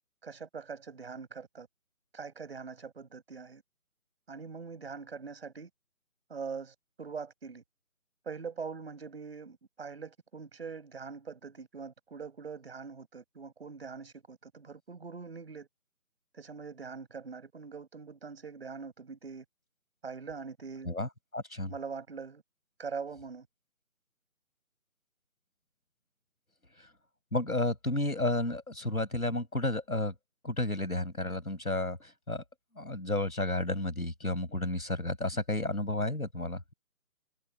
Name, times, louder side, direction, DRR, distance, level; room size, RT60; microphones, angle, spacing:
voice 1, 0.2-1.7 2.1-3.6 4.3-5.7 6.3-7.6 8.3-15.7 16.3-19.4 20.0-20.9 21.7-22.4 22.8-23.5, right 5 dB, 45° right, 5.3 m, -43 dB
voice 2, 20.9-21.7 27.3-30.1 30.4-32.4 32.8-36.7, left 2 dB, 80° left, 7.1 m, -32 dB
figure-of-eight pair, 155°, 43 cm